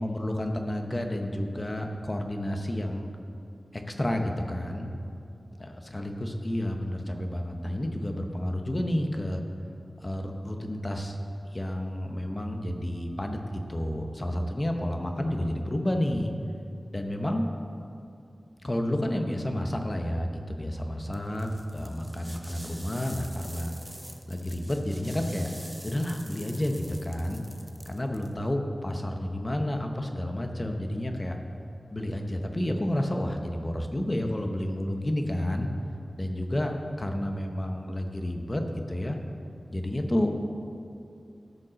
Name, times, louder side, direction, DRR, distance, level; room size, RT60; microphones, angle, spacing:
voice 1, 0.0-3.1 3.7-4.9 5.6-9.4 10.0-11.2 11.5-16.3 16.9-17.4 18.6-23.7 24.3-25.5 25.8-27.4 27.9-31.4 31.9-35.7 36.2-36.7 37.0-38.6 38.9-39.2 39.7-40.3, left 1 dB, 25° left, 4 dB, 0.9 m, -30 dB
sound 1, 21.1-28.3, equal, 10° right, 0.7 m, -46 dB
14.0 x 5.3 x 6.3 m, 2.5 s
wide cardioid pair, 85°, 0 cm